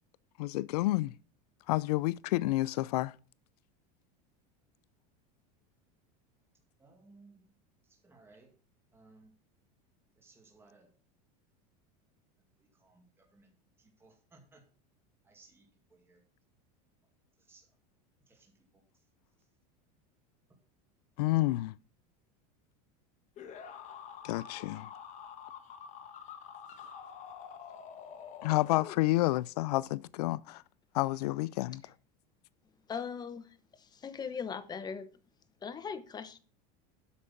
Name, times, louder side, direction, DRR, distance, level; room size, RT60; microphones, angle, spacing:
voice 1, 0.4-1.1 1.7-3.1 21.2-21.7 24.2-24.9 28.4-30.6 30.9-31.8, left 18 dB, 80° left, 0.4 m, -29 dB
voice 2, 6.8-7.4 8.0-8.5 8.9-9.3 10.2-10.9 12.8-13.5 14.0-14.6 15.3-15.7 15.9-16.2 17.5-17.6 18.3-18.8, right 3 dB, 10° right, 2.0 m, -60 dB
sound 1, 23.4-29.4, left 7 dB, 35° left, 1.4 m, -47 dB
voice 3, 32.9-35.1 35.6-36.4, left 6 dB, 20° left, 0.9 m, -40 dB
8.4 x 6.4 x 5.7 m
supercardioid pair, 130°, 20 cm